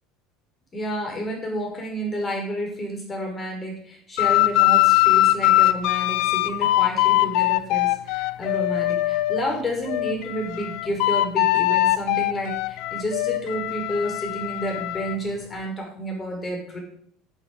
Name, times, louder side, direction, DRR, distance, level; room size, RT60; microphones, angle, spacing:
voice 1, 0.7-16.8, equal, 25° left, 0 dB, 5.1 m, -30 dB
sound 1, 4.2-9.4 9.9-15.2, left 17 dB, 70° left, 0.5 m, -21 dB
11.5 x 7.2 x 5.3 m, 0.63 s
hypercardioid pair, 85°, 0 cm